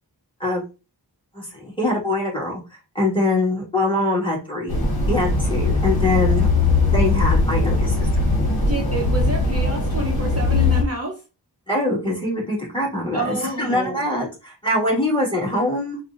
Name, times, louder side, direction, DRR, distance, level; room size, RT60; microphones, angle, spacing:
voice 1, 1.3-2.6 2.9-4.8 5.1-6.5 6.9-8.1 11.7-16.0, left 1 dB, 10° left, -4 dB, 1.7 m, -23 dB
sound 1, 4.7-10.8, left 3 dB, 60° left, 1.1 m, -20 dB
voice 2, 8.7-11.1 13.1-14.0, right 2 dB, 35° right, 0 dB, 0.7 m, -28 dB
4.2 x 2.1 x 2.4 m, 0.30 s
wide cardioid pair, 50°, 41 cm